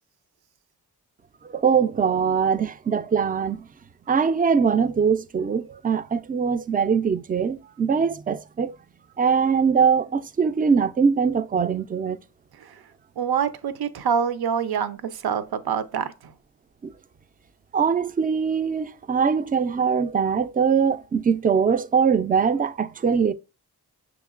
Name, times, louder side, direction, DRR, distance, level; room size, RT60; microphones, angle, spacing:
voice 1, 1.5-3.6 4.1-8.8 9.2-12.2 17.7-23.3, right 6 dB, 25° right, 0.3 m, -22 dB
voice 2, 13.2-16.3, right 7 dB, 75° right, 0.6 m, -26 dB
6.2 x 3.0 x 2.4 m
cardioid pair, 45°, 38 cm